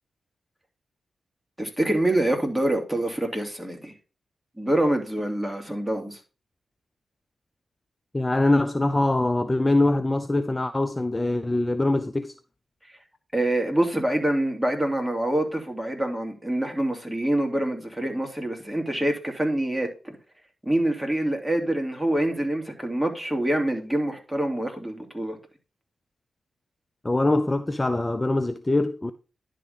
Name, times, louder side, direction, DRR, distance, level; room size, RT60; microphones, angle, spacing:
voice 1, 1.6-3.9 4.6-6.2 13.3-20.2 20.6-25.4, right 1 dB, ahead, 2.6 m, -26 dB
voice 2, 8.1-12.3 27.0-29.1, left 2 dB, 25° left, 0.6 m, -23 dB
10.5 x 3.8 x 5.3 m
supercardioid pair, 40°, 0 cm